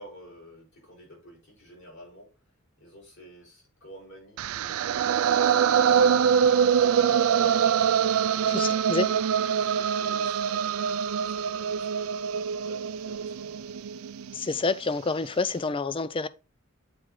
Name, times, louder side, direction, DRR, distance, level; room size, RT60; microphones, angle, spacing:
voice 1, 0.0-2.3 2.8-7.6 8.2-13.7, equal, 60° left, 4.3 m, -49 dB
sound 1, 4.4-14.4, right 8 dB, 75° right, 0.4 m, -24 dB
voice 2, 8.5-9.1 14.3-16.3, left 4 dB, 25° left, 0.4 m, -28 dB
7.7 x 4.8 x 3.8 m
head